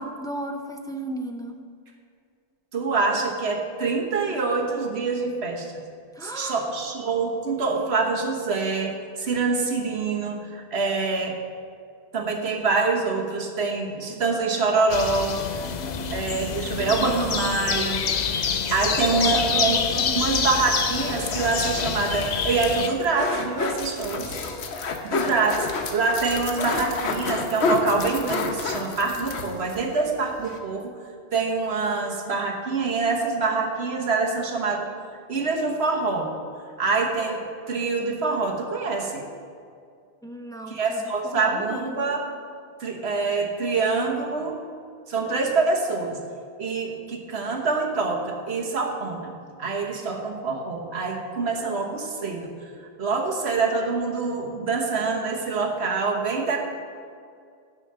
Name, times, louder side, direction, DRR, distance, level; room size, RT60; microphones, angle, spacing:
voice 1, 0.0-1.6 6.1-6.6 15.6-16.2 16.6-17.1 19.1-20.3 24.3-24.8 40.2-42.0, right 1 dB, 5° left, 4 dB, 0.5 m, -36 dB
voice 2, 2.7-5.8 6.2-11.4 12.1-15.6 16.1-18.1 18.7-24.3 25.0-30.9 31.3-34.9 35.3-36.3 36.8-39.3 40.7-42.2 42.8-44.6 45.1-46.2 46.6-49.3 49.6-52.5 53.0-56.6, right 4 dB, 75° right, 1 dB, 1.5 m, -25 dB
sound 1, 14.9-22.9, left 6 dB, 50° left, 0.6 m, -27 dB
sound 2, 20.5-29.8 30.1-30.2 30.4-30.6, left 4 dB, 80° left, 1.1 m, -30 dB
10.0 x 6.3 x 6.6 m, 2.3 s
omnidirectional pair, 1.1 m